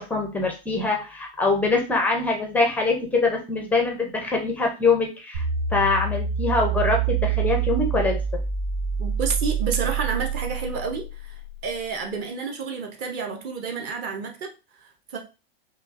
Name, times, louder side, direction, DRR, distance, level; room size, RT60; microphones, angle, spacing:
voice 1, 0.0-5.4 5.7-8.2, left 3 dB, 5° left, 2 dB, 0.4 m, -23 dB
sound 1, 5.3-11.6, right 7 dB, 80° right, 1.4 m, -26 dB
voice 2, 9.0-14.5 14.8-15.2, right 5 dB, 35° right, 3 dB, 0.7 m, -30 dB
5.3 x 2.3 x 2.5 m, 0.30 s
supercardioid pair, 150°, 31 cm